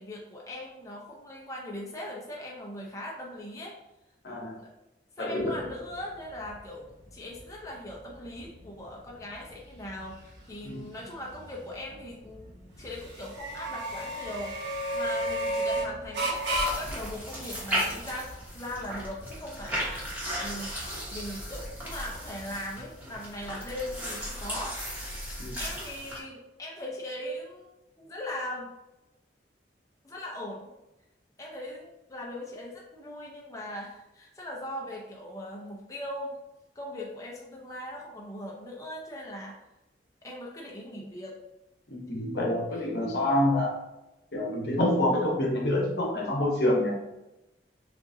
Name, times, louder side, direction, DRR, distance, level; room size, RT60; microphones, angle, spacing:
voice 1, 0.0-3.8 4.6-4.7 5.2-12.5 12.8-14.6 14.9-20.8 21.1-24.8 25.6-27.7 28.0-28.7 30.0-30.7 31.4-36.4 36.8-39.6 40.2-41.4 42.1-42.2 42.7-42.8, left 1 dB, 20° left, -3 dB, 0.6 m, -40 dB
voice 2, 5.2-5.5 10.6-10.8 25.4-25.6 41.9-43.8 44.3-47.0, left 1 dB, 65° left, -1 dB, 1.0 m, -27 dB
sound 1, 5.4-22.6, right 1 dB, 80° right, 1.2 m, -36 dB
sound 2, 16.3-26.2, equal, 10° right, 1.2 m, -36 dB
6.6 x 2.5 x 2.7 m, 0.95 s
head